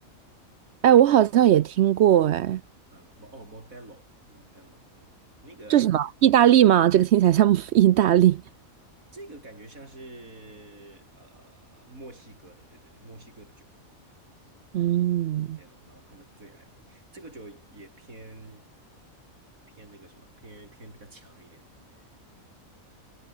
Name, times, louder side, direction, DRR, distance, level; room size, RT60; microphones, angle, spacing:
voice 1, 0.8-2.6 5.7-8.4 14.7-15.6, right 11 dB, 65° right, 0.7 m, -18 dB
voice 2, 2.9-5.2 5.4-5.9 9.1-13.7 15.3-18.7 19.7-21.7 21.9-22.5, right 2 dB, 85° right, 6.5 m, -48 dB
omnidirectional pair, 1.4 m